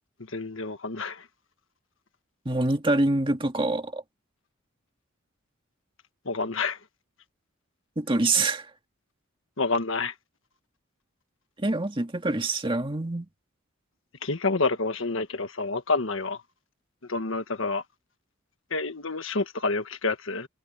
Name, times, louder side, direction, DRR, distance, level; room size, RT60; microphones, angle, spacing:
voice 1, 0.3-1.2 6.2-6.8 9.6-10.1 14.2-16.4 17.1-17.8 18.7-20.5, left 3 dB, 65° left, 1.6 m, -28 dB
voice 2, 2.5-4.0 8.0-8.7 11.6-13.3, right 2 dB, 25° right, 1.9 m, -25 dB
head